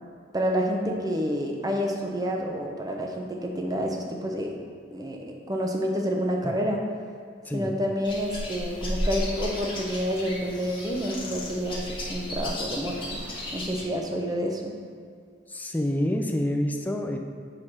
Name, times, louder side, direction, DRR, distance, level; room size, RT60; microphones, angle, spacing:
voice 1, 0.3-4.5 4.9-6.8 7.5-13.2 13.5-14.7, equal, 20° right, 1 dB, 0.7 m, -29 dB
sound 1, 8.0-13.8, left 1 dB, 25° left, 1.5 m, -34 dB
voice 2, 15.5-17.2, left 1 dB, 10° left, 3 dB, 0.4 m, -27 dB
6.6 x 4.8 x 4.2 m, 2.2 s
head